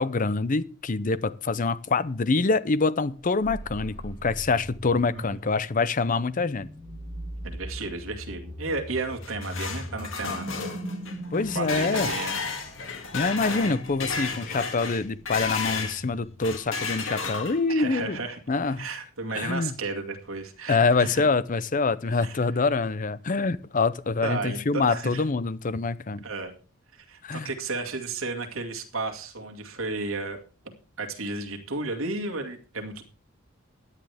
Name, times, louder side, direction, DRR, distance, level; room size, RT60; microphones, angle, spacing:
voice 1, 0.0-6.7 11.3-12.1 13.1-18.2 18.5-18.8 19.4-19.7 20.7-26.2 27.2-27.5, left 4 dB, 40° left, 16 dB, 0.6 m, -25 dB
sound 1, 3.2-16.7, equal, 15° left, 3.6 m, -40 dB
voice 2, 7.4-10.5 11.5-12.4 17.7-18.4 18.8-21.2 22.2-22.4 24.2-25.2 26.2-26.5 26.9-30.4 31.0-33.0, right 3 dB, 75° right, 3 dB, 2.2 m, -33 dB
sound 2, 9.0-16.0 16.4-17.8, left 5 dB, 65° left, 2.1 m, -32 dB
16.0 x 10.0 x 3.5 m, 0.37 s
head